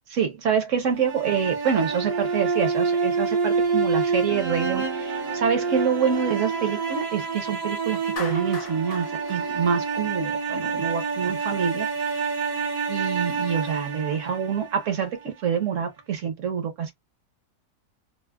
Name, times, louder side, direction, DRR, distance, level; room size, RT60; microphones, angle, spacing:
voice 1, 0.1-11.9 12.9-16.9, right 7 dB, 55° right, 1.0 m, -26 dB
sound 1, 0.9-15.1, right 5 dB, 90° right, 1.6 m, -27 dB
Clapping, 8.2-10.5, left 4 dB, 50° left, 1.0 m, -38 dB
3.4 x 2.1 x 2.2 m
omnidirectional pair, 1.8 m